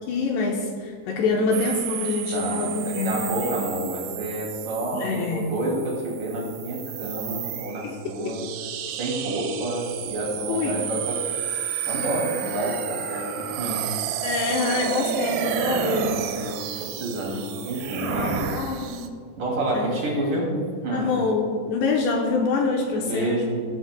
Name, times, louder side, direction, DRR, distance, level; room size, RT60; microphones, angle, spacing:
voice 1, 0.1-3.5 4.9-5.5 7.8-8.4 10.5-10.8 12.0-12.1 14.2-16.3 18.0-19.1 19.7-19.9 20.9-23.4, left 4 dB, 75° left, 0 dB, 2.8 m, -26 dB
sound 1, 1.5-19.1, right 9 dB, 85° right, 2.2 m, -31 dB
voice 2, 2.3-8.5 9.0-11.2 11.5-11.6 11.9-13.9 14.5-14.6 15.7-18.5 19.4-20.5 20.8-21.2 22.9-23.6, right 1 dB, 50° right, -3 dB, 3.6 m, -29 dB
18.0 x 13.5 x 2.2 m, 2.2 s
omnidirectional pair, 5.5 m